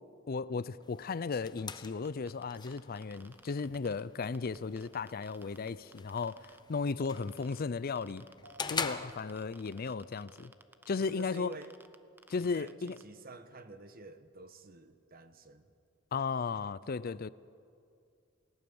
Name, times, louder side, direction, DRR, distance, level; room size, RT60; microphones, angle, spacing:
voice 1, 0.3-8.2 8.7-10.5 10.9-11.5 12.3-13.0 16.1-17.3, left 4 dB, 50° left, 0.5 m, -35 dB
sound 1, 0.8-9.8, left 5 dB, 20° left, 0.9 m, -44 dB
sound 2, 2.0-6.6 7.0-7.6 7.9-13.0, right 2 dB, 10° right, 0.8 m, -57 dB
sound 3, 8.4-12.1 12.5-12.6, left 1 dB, 70° right, 1.4 m, -60 dB
voice 2, 11.0-11.7 12.4-15.7, right 2 dB, 50° right, 1.3 m, -50 dB
29.0 x 18.0 x 7.1 m
head